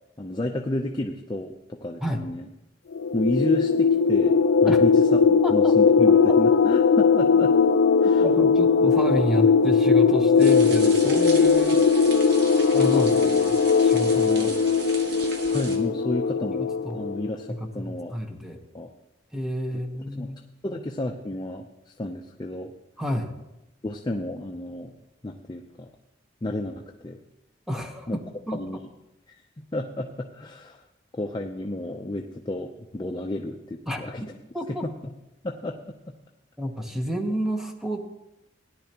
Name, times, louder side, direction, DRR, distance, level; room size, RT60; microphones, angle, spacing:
voice 1, 0.2-2.5 3.1-4.3 4.6-7.5 8.0-8.2 15.5-16.7 16.9-18.1 18.7-18.9 19.9-20.3 20.6-21.7 22.0-22.7 23.8-24.9 25.2-25.9 26.4-27.2 28.1-28.2 28.5-28.8 29.7-30.8 31.1-34.2 34.7-34.9 35.4-36.1, left 1 dB, 25° left, 2 dB, 0.6 m, -31 dB
sound 1, 2.9-17.3, left 5 dB, 90° left, 0.4 m, -19 dB
voice 2, 5.4-5.7 8.0-11.8 12.7-14.6 16.8-17.1 17.5-18.6 19.3-20.8 23.0-23.3 27.7-28.6 33.9-34.0 34.5-34.8 36.6-38.0, equal, ahead, 3 dB, 1.1 m, -30 dB
sound 2, 10.4-15.8, right 3 dB, 65° right, 1.5 m, -38 dB
17.0 x 10.5 x 2.9 m, 0.92 s
head